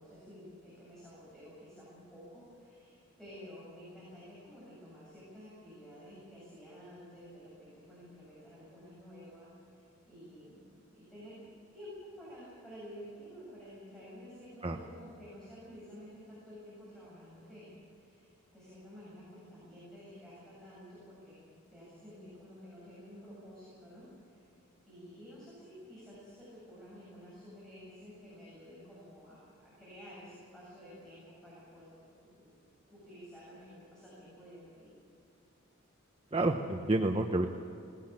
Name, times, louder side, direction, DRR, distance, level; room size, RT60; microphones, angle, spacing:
voice 1, 0.0-11.4 11.7-24.0 24.3-24.4 24.9-32.6 32.8-35.0, equal, 5° left, -9 dB, 7.7 m, -51 dB
voice 2, 36.3-37.5, right 2 dB, 25° right, 4 dB, 1.0 m, -29 dB
20.5 x 17.5 x 8.8 m, 2.7 s
head